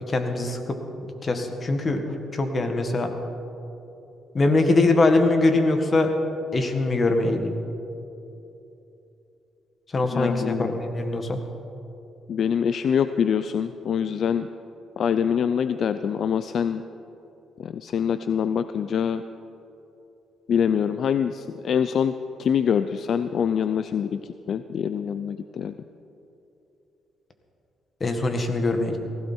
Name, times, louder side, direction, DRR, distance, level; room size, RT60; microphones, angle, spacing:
voice 1, 0.1-0.8 1.1-3.1 4.3-6.1 6.5-7.5 9.9-11.4 28.0-29.1, left 2 dB, 35° left, 5 dB, 1.9 m, -22 dB
voice 2, 10.1-10.7 12.3-14.5 15.0-16.8 17.6-19.2 20.5-24.2 24.5-25.7, left 7 dB, 60° left, 11 dB, 0.5 m, -24 dB
18.5 x 16.0 x 4.5 m, 2.9 s
cardioid pair, 90°, 0 cm